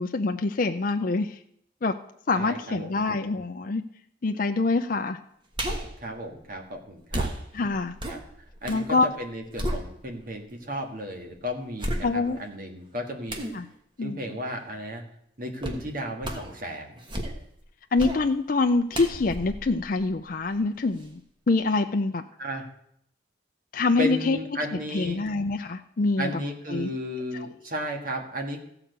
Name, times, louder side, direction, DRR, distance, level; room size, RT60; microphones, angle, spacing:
voice 1, 0.0-1.4 1.8-2.0 2.3-3.8 4.2-5.2 7.5-7.9 8.7-9.1 12.0-12.4 13.5-13.6 14.0-14.2 17.9-21.2 21.5-22.2 23.7-24.4 24.7-26.3 26.7-26.9, left 3 dB, 50° left, 6 dB, 0.5 m, -25 dB
voice 2, 2.3-2.9 6.0-7.3 8.1-8.2 8.6-13.4 14.0-15.0 15.4-17.0 22.4-22.7 24.0-25.2 26.2-28.6, equal, 50° right, 3 dB, 1.7 m, -34 dB
sound 1, 5.5-6.0 7.1-8.9 9.2-10.3 10.9-11.0 11.8-12.5 13.3-13.6 15.6-15.9 16.2-16.6 17.0-17.6 18.0-18.2 18.9-20.6 21.0-21.1, right 1 dB, 25° right, 1.3 m, -33 dB
14.5 x 4.9 x 8.0 m, 0.72 s
head